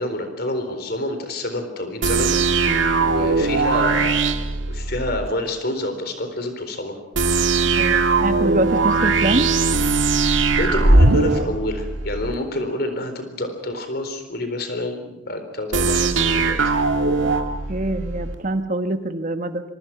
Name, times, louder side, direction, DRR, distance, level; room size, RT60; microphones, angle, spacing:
voice 1, 0.0-4.3 4.7-7.0 10.2-16.7, left 1 dB, 55° left, 7 dB, 4.1 m, -28 dB
sound 1, 2.0-5.3 7.1-12.4 15.7-18.4, right 3 dB, 80° right, 1.9 m, -20 dB
voice 2, 7.8-9.5 17.2-17.3 17.7-19.6, right 1 dB, 40° right, 9 dB, 1.5 m, -24 dB
26.5 x 24.5 x 6.0 m, 0.89 s
head